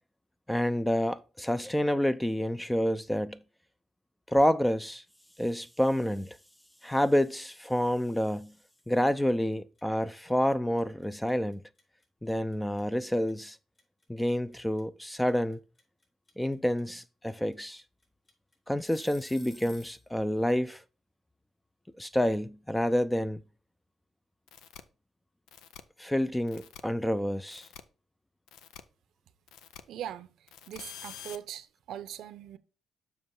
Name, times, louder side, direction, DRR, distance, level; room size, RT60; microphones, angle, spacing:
voice 1, 0.5-3.4 4.3-5.0 5.4-6.4 6.8-8.5 8.9-11.6 12.2-13.6 14.1-15.6 16.4-17.8 18.7-20.8 22.0-23.4 26.0-27.7, equal, 5° left, 0.5 m, -28 dB
Kitchen Timer, 8.8-9.0 9.3-20.0, left 2 dB, 40° left, 3.9 m, -54 dB
sound 1, 24.5-24.8 25.5-25.8 26.5-26.8 27.5-27.8 28.5-28.8 29.5-29.8 30.5-31.4, left 9 dB, 90° left, 0.6 m, -47 dB
voice 2, 29.9-32.6, right 10 dB, 80° right, 0.7 m, -41 dB
7.2 x 5.5 x 3.9 m
cardioid pair, 90°, 0 cm